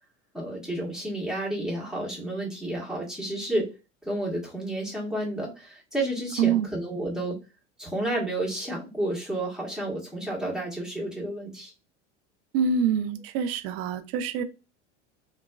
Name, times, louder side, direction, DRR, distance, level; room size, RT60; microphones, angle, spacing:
voice 1, 0.3-3.7 4.0-7.4 7.8-11.7, right 1 dB, ahead, -4 dB, 1.4 m, -31 dB
voice 2, 6.4-6.7 12.5-14.4, right 7 dB, 55° right, 10 dB, 0.5 m, -25 dB
3.1 x 2.2 x 2.3 m, 0.28 s
hypercardioid pair, 80°, 36 cm